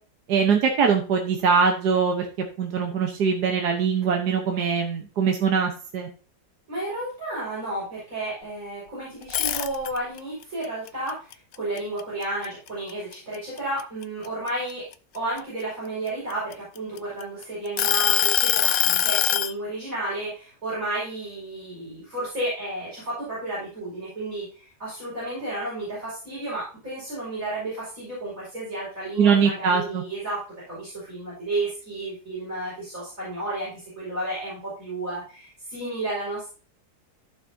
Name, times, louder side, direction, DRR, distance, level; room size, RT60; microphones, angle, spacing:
voice 1, 0.3-2.3 2.6-6.1 29.2-30.0, right 6 dB, 75° right, 3 dB, 1.7 m, -22 dB
voice 2, 6.7-14.9 15.1-30.4 30.7-36.5, right 1 dB, 55° right, -9 dB, 5.8 m, -32 dB
sound 1, 9.2-10.2 10.6-12.4 12.9-13.1 13.6-15.4 16.1-17.2 17.8-19.5, left 11 dB, 70° left, 0.9 m, -23 dB
14.5 x 6.1 x 2.8 m, 0.36 s
omnidirectional pair, 1.8 m